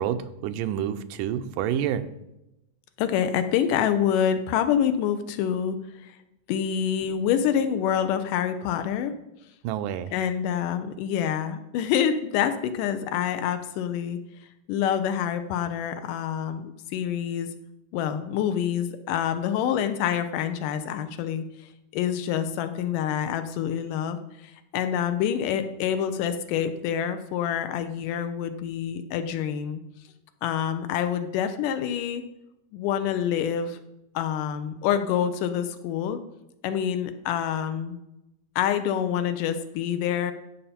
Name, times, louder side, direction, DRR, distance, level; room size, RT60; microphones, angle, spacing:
voice 1, 0.0-2.1 9.6-10.1, right 9 dB, 85° right, 10 dB, 2.2 m, -28 dB
voice 2, 3.0-5.8 6.0-6.2 6.5-9.1 10.1-14.2 14.7-17.5 17.9-21.4 21.9-29.8 30.4-32.2 32.7-33.8 34.2-36.2 36.6-38.0 38.6-40.3, left 9 dB, 90° left, 8 dB, 2.3 m, -26 dB
15.0 x 5.6 x 4.3 m, 0.90 s
omnidirectional pair, 3.7 m